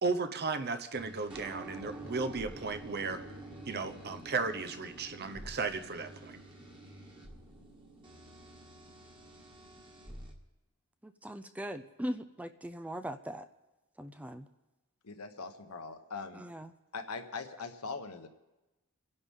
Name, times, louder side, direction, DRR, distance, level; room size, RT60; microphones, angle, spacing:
voice 1, 0.0-3.2 3.7-6.4, right 4 dB, 45° right, 0.8 m, -35 dB
sound 1, 0.9-10.3, right 2 dB, 20° right, 1.9 m, -48 dB
voice 2, 11.0-13.5 14.0-14.5 16.3-16.7, equal, 5° right, 0.4 m, -40 dB
voice 3, 15.0-16.4 16.9-18.3, left 4 dB, 75° left, 1.2 m, -41 dB
27.5 x 11.0 x 3.7 m
head